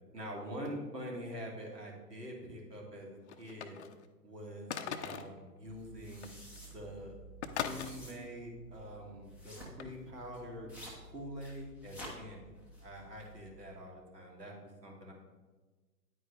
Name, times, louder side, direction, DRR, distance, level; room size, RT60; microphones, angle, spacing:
voice 1, 0.1-3.8 4.2-4.7 5.0-6.3 6.7-7.1 7.5-10.7 11.0-12.5 12.8-14.6 14.8-15.1, equal, 75° right, -1 dB, 2.9 m, -45 dB
sound 1, 3.3-4.1 4.7-5.4 6.2-6.3 6.6-6.8 7.4-7.9 9.8-9.9, left 8 dB, 45° left, 0.6 m, -39 dB
sound 2, 5.6-13.8, right 1 dB, 5° right, 0.6 m, -51 dB
9.4 x 8.9 x 3.3 m, 1.3 s
figure-of-eight pair, 120°, 49 cm